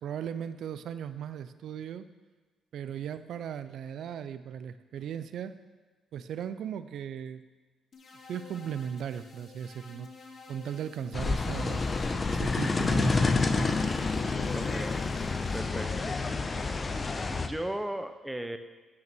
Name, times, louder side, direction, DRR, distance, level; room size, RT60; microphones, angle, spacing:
voice 1, 0.0-2.1 2.7-5.6 6.1-7.4 8.3-10.1 10.5-11.8 12.3-13.7, right 8 dB, 70° right, 12 dB, 0.5 m, -37 dB
sound 1, 7.9-15.6, left 4 dB, 45° left, 1.2 m, -51 dB
sound 2, 11.1-17.5, left 3 dB, 30° left, 0.7 m, -28 dB
voice 2, 14.5-15.0 15.5-16.5 17.3-18.6, right 1 dB, 5° right, 8 dB, 0.7 m, -37 dB
9.2 x 5.8 x 6.1 m, 1.3 s
cardioid pair, 90°, 0 cm